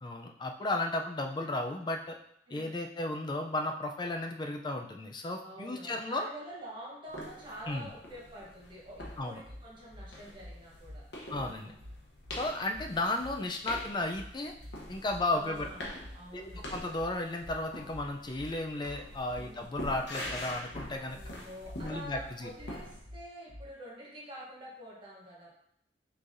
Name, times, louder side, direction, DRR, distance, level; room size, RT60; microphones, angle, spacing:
voice 1, 0.0-2.2 2.5-6.3 7.7-7.9 9.2-9.4 11.3-11.8 12.3-14.5 14.9-15.6 16.3-21.2 21.8-22.5, left 2 dB, 25° left, 4 dB, 0.4 m, -34 dB
voice 2, 2.5-2.8 5.4-11.6 12.6-12.8 15.3-16.8 19.4-19.7 21.1-25.5, equal, 25° right, -4 dB, 1.0 m, -47 dB
sound 1, 7.1-23.0, left 1 dB, 70° left, 0.9 m, -45 dB
sound 2, 9.0-23.7, left 1 dB, 55° right, 1.8 m, -48 dB
5.6 x 3.3 x 2.6 m, 0.74 s
head